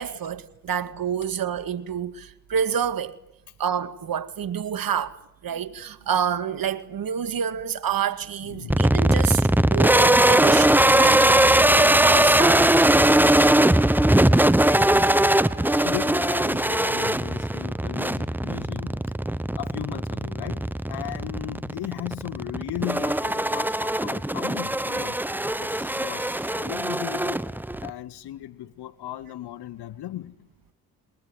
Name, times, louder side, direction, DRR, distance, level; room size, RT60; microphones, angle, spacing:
voice 1, 0.0-3.2 3.6-5.2 5.4-12.7 15.1-15.9 18.5-18.7, right 8 dB, 55° right, 2.1 m, -28 dB
voice 2, 8.4-9.1 10.6-10.7 13.6-13.8 15.6-19.0 19.6-25.2 25.6-27.5 27.8-30.5, left 13 dB, 65° left, 1.6 m, -37 dB
sound 1, 8.7-27.9, right 1 dB, 5° right, 1.0 m, -20 dB
28.0 x 22.0 x 9.7 m
supercardioid pair, 55°, 42 cm